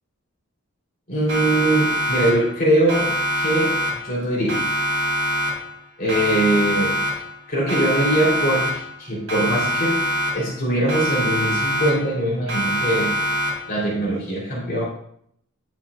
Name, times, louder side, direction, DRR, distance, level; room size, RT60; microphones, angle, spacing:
voice 1, 1.1-3.8 4.0-4.6 6.0-7.0 7.5-10.0 10.3-13.1 13.7-14.8, right 1 dB, 45° left, -5 dB, 3.5 m, -22 dB
Siren, 1.3-2.6 2.9-4.2 4.5-5.8 6.1-7.4 7.7-9.0 9.3-10.6 10.9-12.2 12.5-13.8, equal, 80° right, 2.8 m, -24 dB
10.5 x 7.1 x 2.4 m, 0.67 s
head